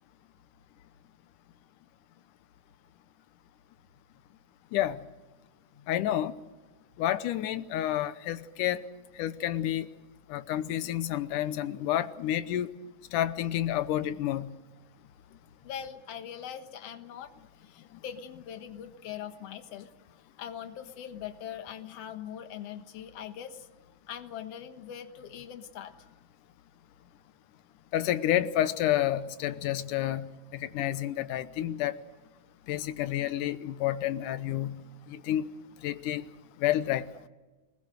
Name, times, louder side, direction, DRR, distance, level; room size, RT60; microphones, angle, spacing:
voice 1, 5.9-6.3 7.0-8.8 9.2-9.9 10.3-12.7 13.1-14.5 27.9-30.3 30.5-32.0 32.7-34.8 35.1-35.5 35.8-36.2 36.6-37.1, left 12 dB, 85° left, 13 dB, 2.4 m, -29 dB
voice 2, 15.6-17.3 17.6-19.9 20.4-23.7 24.1-26.1, left 9 dB, 55° left, 7 dB, 2.3 m, -42 dB
26.5 x 20.0 x 6.5 m, 1.2 s
omnidirectional pair, 3.6 m